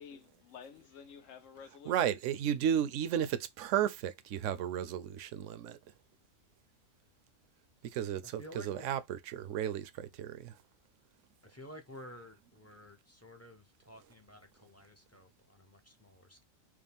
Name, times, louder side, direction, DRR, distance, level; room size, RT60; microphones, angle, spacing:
voice 1, 0.0-2.0, left 7 dB, 75° left, 1.1 m, -51 dB
voice 2, 1.9-5.8 7.9-10.5, right 9 dB, 70° right, 0.9 m, -33 dB
voice 3, 8.2-8.9 11.4-16.4, left 1 dB, 15° left, 0.5 m, -52 dB
4.8 x 2.1 x 3.4 m
omnidirectional pair, 1.4 m